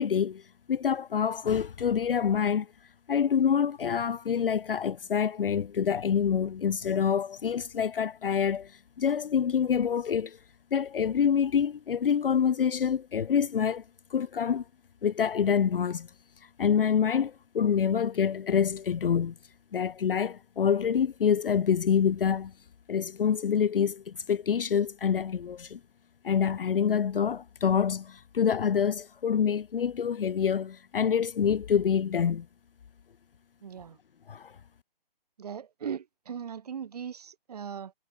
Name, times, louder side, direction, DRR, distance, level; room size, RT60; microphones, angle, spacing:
voice 1, 0.0-2.7 3.1-10.4 10.7-13.8 14.1-14.6 15.0-16.1 16.4-19.3 19.7-22.5 22.9-25.8 26.2-32.5 34.3-34.6, left 7 dB, 65° left, 0.7 m, -26 dB
voice 2, 33.6-34.0 35.4-37.9, right 7 dB, 40° right, 0.7 m, -38 dB
hypercardioid pair, 160°, 30 cm